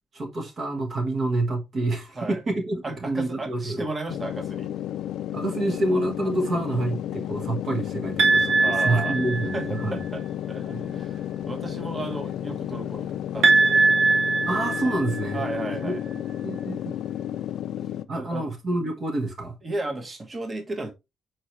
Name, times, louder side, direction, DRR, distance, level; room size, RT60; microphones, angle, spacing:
voice 1, 0.1-3.8 5.3-10.0 10.7-11.0 14.5-15.4 15.7-16.0 16.4-16.9 18.1-19.6, right 2 dB, 45° right, 1.3 m, -27 dB
voice 2, 2.8-4.7 8.6-9.2 9.5-13.9 15.3-16.0 18.1-18.5 19.6-20.9, right 2 dB, 25° right, 1.3 m, -34 dB
sound 1, 4.1-18.1, left 11 dB, 85° left, 0.4 m, -32 dB
sound 2, 8.2-9.8 13.4-15.5, right 3 dB, 80° right, 1.6 m, -21 dB
6.7 x 4.5 x 3.1 m
cardioid pair, 135°, 0 cm